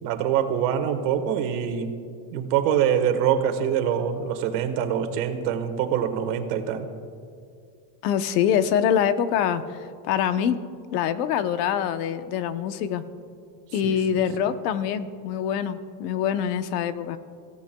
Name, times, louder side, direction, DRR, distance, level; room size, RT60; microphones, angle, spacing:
voice 1, 0.0-1.9 2.3-6.9 13.8-14.0, right 9 dB, 65° right, 6 dB, 1.6 m, -24 dB
voice 2, 8.0-10.6 10.9-13.0 13.7-17.2, left 9 dB, 70° left, 10 dB, 0.9 m, -25 dB
26.5 x 16.0 x 2.3 m, 2.3 s
cardioid pair, 175°, 50 cm